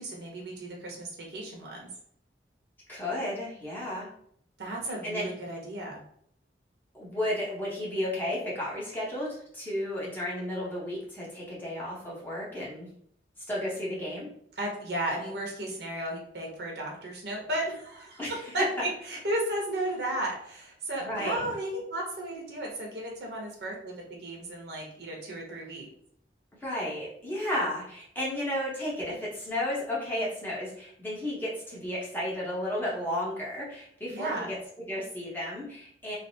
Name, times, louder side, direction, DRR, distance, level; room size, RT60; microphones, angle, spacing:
voice 1, 0.0-1.9 4.6-6.0 14.6-18.2 18.5-18.6 19.1-25.9 34.1-34.5, right 1 dB, 65° right, -1 dB, 0.8 m, -34 dB
voice 2, 2.9-4.1 5.0-5.3 6.9-12.9 13.5-14.3 18.2-18.7 21.0-21.4 26.6-36.2, left 1 dB, 10° left, -6 dB, 0.8 m, -33 dB
3.2 x 2.0 x 2.7 m, 0.66 s
head